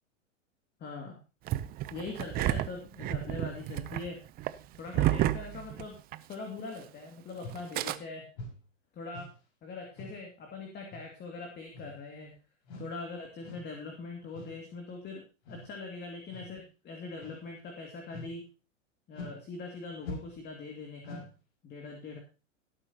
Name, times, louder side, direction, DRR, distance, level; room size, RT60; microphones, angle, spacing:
voice 1, 0.8-1.2 1.9-4.2 4.8-6.0 6.3-8.3 8.9-9.3 9.6-12.3 12.8-15.2 15.5-18.4 19.1-21.3 21.6-22.2, left 3 dB, 25° left, 1 dB, 2.3 m, -42 dB
Engine starting, 1.5-6.3 6.6-6.7 7.5-8.0, right 14 dB, 25° right, 0.5 m, -31 dB
sound 1, 7.4-7.7 8.4-8.6 9.1-9.4 10.0-10.2 10.9-11.1 11.7-12.1 12.6-13.0 13.4-13.7 14.3-14.7 15.4-15.7 16.3-16.6 17.2-17.5 18.1-18.4 19.1-19.4 20.0-20.5 21.0-21.3, left 1 dB, 55° left, 5.4 m, -44 dB
17.5 x 8.6 x 2.9 m, 0.32 s
hypercardioid pair, 110°, 38 cm